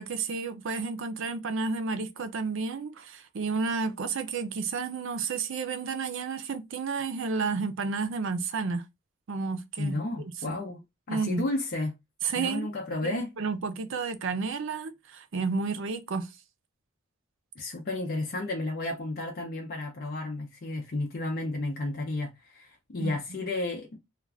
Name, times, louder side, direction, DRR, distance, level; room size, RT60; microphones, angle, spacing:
voice 1, 0.0-8.8 9.3-10.0 10.5-10.6 11.1-11.4 12.2-12.7 13.0-16.3 23.0-23.1, right 4 dB, 65° right, 0.5 m, -31 dB
voice 2, 9.8-10.8 11.1-11.9 12.3-13.3 17.6-24.0, left 2 dB, 50° left, 0.6 m, -32 dB
2.4 x 2.3 x 3.2 m
head